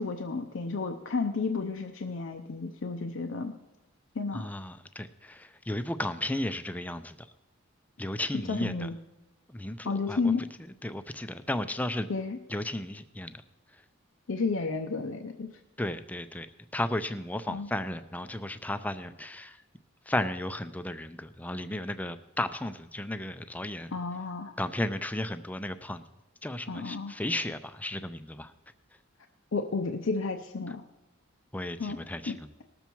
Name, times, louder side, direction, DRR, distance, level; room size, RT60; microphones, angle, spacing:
voice 1, 0.0-3.5 4.2-4.5 8.5-8.9 9.9-10.5 12.1-12.4 14.3-15.5 17.5-17.7 23.9-24.6 26.7-27.2 29.5-30.8 31.8-32.0 32.3-32.4, left 4 dB, 65° left, 5 dB, 0.6 m, -32 dB
voice 2, 4.3-7.3 8.0-8.9 9.5-10.5 10.8-12.1 12.5-13.4 15.8-16.5 16.7-19.6 20.1-23.9 24.6-26.0 26.4-28.5 31.5-32.5, left 1 dB, 5° left, 11 dB, 0.4 m, -34 dB
19.0 x 7.0 x 4.5 m, 1.1 s
head